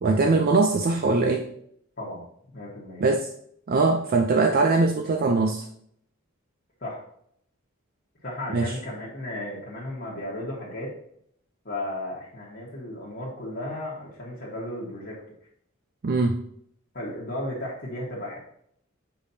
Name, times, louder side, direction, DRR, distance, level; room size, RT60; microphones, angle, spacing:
voice 1, 0.0-1.5 3.0-3.3 3.7-5.7 8.5-8.7 16.0-16.4, right 3 dB, 45° right, 4 dB, 0.4 m, -21 dB
voice 2, 2.5-3.0 6.8-7.0 8.2-10.9 11.6-15.2 16.9-18.4, left 1 dB, 50° left, -7 dB, 1.4 m, -34 dB
7.0 x 5.0 x 2.7 m, 0.68 s
head